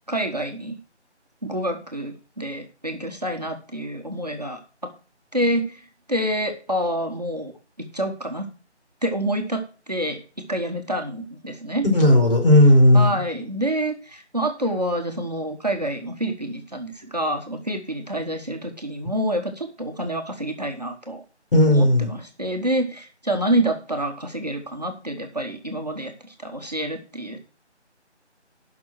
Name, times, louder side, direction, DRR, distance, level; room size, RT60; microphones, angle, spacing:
voice 1, 0.1-0.8 1.4-4.9 5.3-8.5 9.0-11.9 12.9-21.2 21.7-27.4, right 1 dB, 35° right, 4 dB, 1.4 m, -27 dB
voice 2, 11.9-13.1 21.5-22.1, left 1 dB, 50° left, 2 dB, 4.8 m, -14 dB
11.0 x 6.1 x 6.3 m, 0.37 s
figure-of-eight pair, 180°, 35 cm